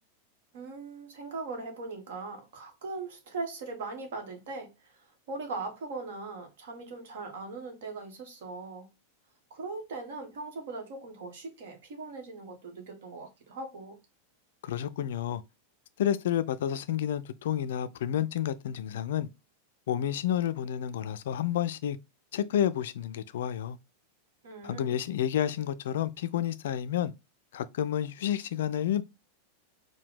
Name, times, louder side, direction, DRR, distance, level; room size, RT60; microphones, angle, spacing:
voice 1, 0.5-8.9 9.5-14.0 24.4-24.9, right 3 dB, 55° right, 1.2 m, -40 dB
voice 2, 14.6-15.4 16.0-19.3 19.9-22.0 22.3-23.8 24.6-27.1 27.5-29.0, left 10 dB, 60° left, 0.3 m, -30 dB
4.6 x 2.2 x 3.6 m
figure-of-eight pair, 90°, 0 cm